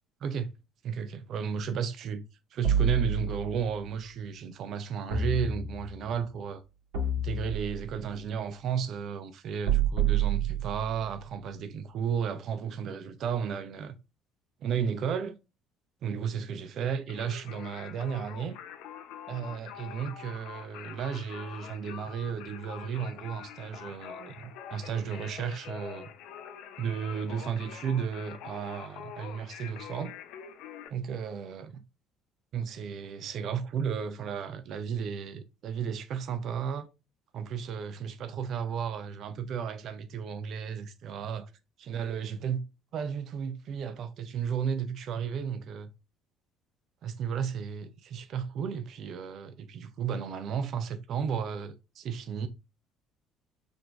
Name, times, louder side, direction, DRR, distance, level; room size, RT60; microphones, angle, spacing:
voice 1, 0.8-2.2 2.5-6.6 7.2-13.9 14.6-15.4 16.0-18.6 19.3-26.1 26.8-30.2 30.9-31.7 32.5-36.9 37.3-41.5 41.8-42.6 42.9-45.9 47.0-52.5, right 7 dB, 50° right, 0.4 m, -33 dB
sound 1, 2.6-3.7 5.1-6.1 6.9-8.0 9.6-11.1, right 6 dB, 65° right, 1.9 m, -28 dB
Singing, 17.1-30.9, left 8 dB, 60° left, 0.4 m, -45 dB
3.8 x 3.3 x 2.3 m
figure-of-eight pair, 55°, 0 cm